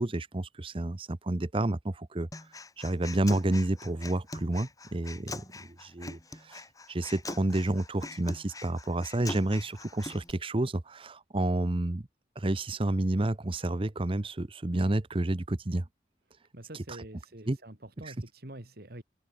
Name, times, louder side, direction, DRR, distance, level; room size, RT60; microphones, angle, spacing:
voice 1, 0.0-2.3 2.8-6.6 6.9-12.1 12.4-15.8 16.9-17.0 17.5-17.6 18.0-18.1, right 1 dB, 30° right, 0.8 m, -30 dB
Human voice, 2.3-10.3, left 2 dB, 20° left, 4.9 m, -43 dB
voice 2, 16.5-19.0, right 1 dB, 60° right, 2.6 m, -46 dB
open air
head